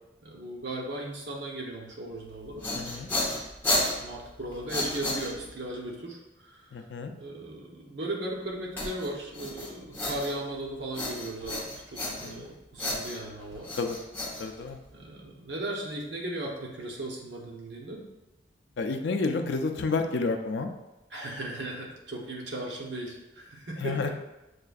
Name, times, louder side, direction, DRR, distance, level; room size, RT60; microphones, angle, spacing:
voice 1, 0.2-2.6 3.9-6.7 7.2-11.6 11.9-13.7 14.9-18.0 21.1-24.1, right 1 dB, 65° right, -2 dB, 0.8 m, -37 dB
sound 1, 2.3-5.7 8.8-10.6 10.9-12.5 12.8-15.0, left 1 dB, 10° left, 0.9 m, -32 dB
voice 2, 2.7-3.1 6.7-7.1 12.1-12.5 13.8-14.0 14.4-14.8 18.8-20.7 23.8-24.1, left 3 dB, 65° left, 6 dB, 0.4 m, -30 dB
6.5 x 2.5 x 2.3 m, 1.0 s
head